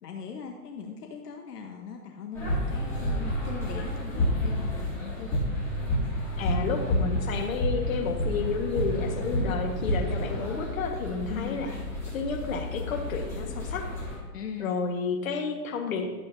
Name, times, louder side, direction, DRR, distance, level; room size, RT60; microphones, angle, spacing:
voice 1, 0.0-5.4 11.3-11.7 14.3-14.7, left 6 dB, 80° left, 2 dB, 1.1 m, -40 dB
sound 1, 2.3-14.2, left 1 dB, 5° left, 2.0 m, -30 dB
voice 2, 6.4-11.7 12.1-13.9 14.6-16.1, left 5 dB, 60° left, 3 dB, 1.5 m, -31 dB
11.5 x 7.6 x 2.7 m, 1.2 s
hypercardioid pair, 160°, 46 cm